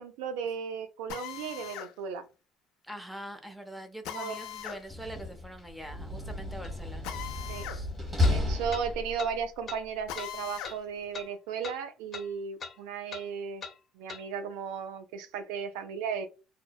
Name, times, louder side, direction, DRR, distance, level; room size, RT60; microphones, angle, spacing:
voice 1, 0.0-2.2 4.1-4.4 7.5-7.7 8.3-13.6 13.9-16.3, right 6 dB, 90° right, 0.4 m, -35 dB
Drill, 1.1-1.9 4.0-4.8 7.0-7.8 8.2-8.3 10.1-10.8, left 10 dB, 80° left, 0.4 m, -40 dB
voice 2, 2.8-7.2 7.7-7.9, equal, ahead, 0.6 m, -43 dB
Slam, 4.7-9.4, left 2 dB, 25° right, 1.4 m, -32 dB
sound 1, 6.6-6.7 8.2-8.4 8.7-8.9 9.2-9.3 9.7-9.8 10.2-10.3 10.6-10.8 11.1-11.3 11.6-11.8 12.1-12.3 12.6-12.8 13.1-13.3 13.6-13.8 14.1-14.2, left 4 dB, 35° left, 0.7 m, -41 dB
2.6 x 2.0 x 2.3 m
supercardioid pair, 90°, 0 cm